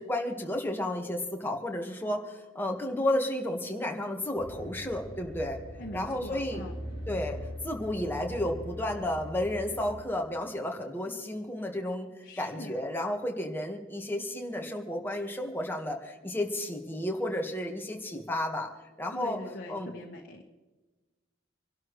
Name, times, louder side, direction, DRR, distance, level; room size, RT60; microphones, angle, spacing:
voice 1, 0.0-5.6 5.9-6.6 7.1-7.4 7.6-18.7 19.0-19.4 19.7-19.9, left 1 dB, 10° left, 2 dB, 1.6 m, -32 dB
sound 1, 4.4-10.0, equal, 55° right, 5.5 m, -41 dB
voice 2, 5.8-6.7 12.2-12.8 19.1-20.4, left 1 dB, 50° left, -1 dB, 1.5 m, -42 dB
26.0 x 12.0 x 3.2 m, 1.2 s
head